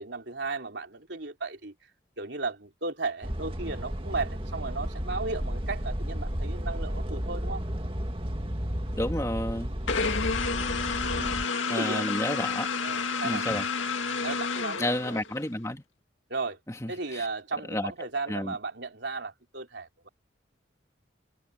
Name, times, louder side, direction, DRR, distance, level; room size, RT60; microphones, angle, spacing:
voice 1, 0.0-1.7 2.2-7.6 11.1-11.4 11.7-12.2 12.8-13.4 14.2-15.2 16.3-16.6 16.9-20.1, right 3 dB, 65° right, 3.3 m, -35 dB
sound 1, 3.2-11.4, equal, 30° right, 2.0 m, -33 dB
voice 2, 9.0-9.7 11.7-12.7 13.2-13.7 14.8-15.8 16.7-17.3 17.7-17.9 18.3-18.6, left 1 dB, 15° left, 2.5 m, -31 dB
sound 2, 9.9-15.5, left 5 dB, 85° left, 2.1 m, -30 dB
head